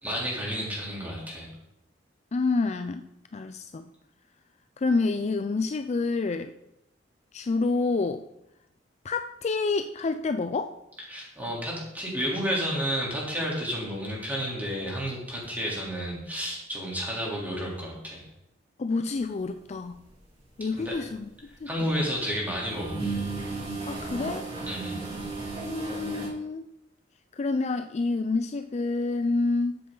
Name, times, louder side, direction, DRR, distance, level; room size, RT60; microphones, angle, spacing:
voice 1, 0.0-1.5 11.1-18.2 20.8-21.0 21.7-23.0 24.7-25.0, equal, 10° right, -4 dB, 3.2 m, -31 dB
voice 2, 2.3-3.0 3.3-3.9 4.8-6.5 7.3-8.2 9.0-10.8 18.8-20.0 20.6-21.3 21.6-22.0 23.9-24.5 25.6-26.7 27.4-29.8, left 3 dB, 35° left, 8 dB, 0.4 m, -28 dB
sound 1, 19.9-20.2 20.6-22.0 22.4-26.3, right 3 dB, 30° right, 3.3 m, -34 dB
12.5 x 7.9 x 3.9 m, 0.85 s
head